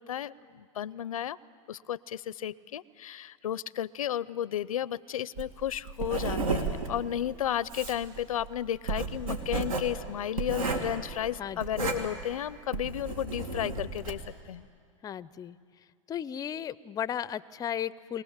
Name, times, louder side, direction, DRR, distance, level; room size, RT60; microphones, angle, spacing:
voice 1, 0.0-1.4 1.7-14.2 14.5-14.7, left 11 dB, 90° left, 21 dB, 0.5 m, -33 dB
Writing, 5.4-14.3, right 3 dB, 85° right, 2.3 m, -33 dB
voice 2, 15.0-15.6 16.1-18.2, left 9 dB, 20° left, 19 dB, 0.4 m, -35 dB
23.5 x 18.5 x 7.3 m, 2.2 s
hypercardioid pair, 115°, 17 cm